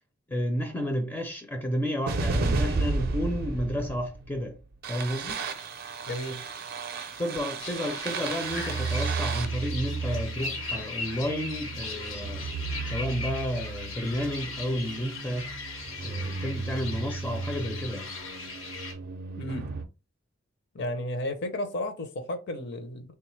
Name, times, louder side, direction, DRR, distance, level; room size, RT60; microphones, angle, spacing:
voice 1, 0.3-4.6 4.9-5.4 7.2-12.5 12.9-15.5 16.0-18.1, equal, 10° left, 0.4 m, -31 dB
sound 1, 2.1-19.9, right 4 dB, 50° right, 0.4 m, -33 dB
voice 2, 6.1-6.4 19.4-19.7 20.7-23.1, left 1 dB, 60° left, 0.6 m, -33 dB
sound 2, 7.6-18.9, left 3 dB, 90° left, 1.0 m, -39 dB
3.4 x 2.3 x 3.1 m
head